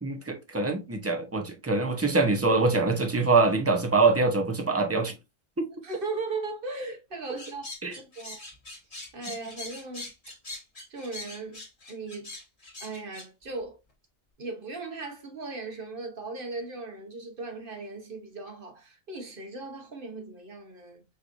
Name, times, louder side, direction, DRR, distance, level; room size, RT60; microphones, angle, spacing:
voice 1, 0.0-5.1 5.6-5.7 7.8-7.9, right 3 dB, 15° right, 0.6 m, -24 dB
voice 2, 5.8-7.7 8.0-8.4 9.1-10.1 10.9-11.6 11.9-12.3 12.8-13.8 14.4-21.0, right 3 dB, 45° right, 1.2 m, -37 dB
sound 1, 7.4-13.3, left 2 dB, 30° left, 1.4 m, -42 dB
5.1 x 3.2 x 2.5 m
omnidirectional pair, 1.3 m